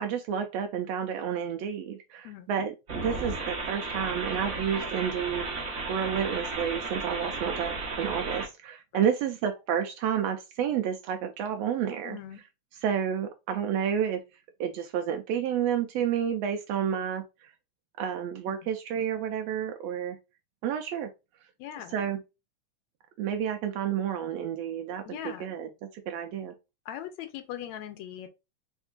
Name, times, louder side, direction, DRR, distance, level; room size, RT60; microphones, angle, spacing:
voice 1, 0.0-12.2 12.8-14.2 14.6-17.5 18.0-20.2 20.6-21.1 21.9-22.2 23.2-26.5, right 8 dB, 80° right, 1.5 m, -30 dB
sound 1, 2.9-8.5, right 3 dB, 50° right, 0.8 m, -34 dB
voice 2, 12.0-12.4 21.6-22.0 25.1-25.5 26.9-28.3, left 11 dB, 80° left, 1.8 m, -40 dB
4.5 x 3.5 x 2.4 m
omnidirectional pair, 3.4 m